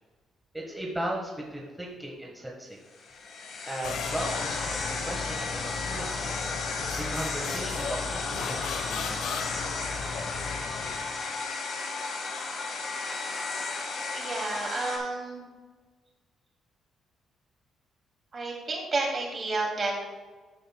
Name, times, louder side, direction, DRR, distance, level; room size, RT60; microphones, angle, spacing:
voice 1, 0.5-2.8 3.7-6.4 6.9-9.2, right 1 dB, 5° right, -2 dB, 1.4 m, -37 dB
sound 1, 2.9-15.0, left 3 dB, 60° left, 1.7 m, -34 dB
sound 2, 3.8-11.2, left 5 dB, 85° left, 1.0 m, -36 dB
voice 2, 14.1-15.4 18.3-20.0, right 3 dB, 40° right, -1 dB, 2.6 m, -31 dB
13.5 x 6.6 x 2.3 m, 1.4 s
cardioid pair, 90°, 0 cm